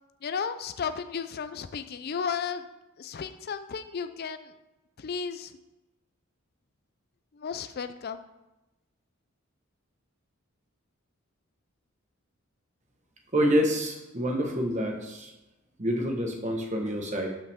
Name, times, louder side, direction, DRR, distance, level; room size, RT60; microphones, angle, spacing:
voice 1, 0.2-2.6 3.0-4.5 5.0-5.5 7.3-8.3, left 6 dB, 50° left, 11 dB, 0.4 m, -34 dB
voice 2, 13.3-15.3 15.8-17.3, equal, 35° right, 2 dB, 1.3 m, -27 dB
12.0 x 5.8 x 3.6 m, 0.99 s
head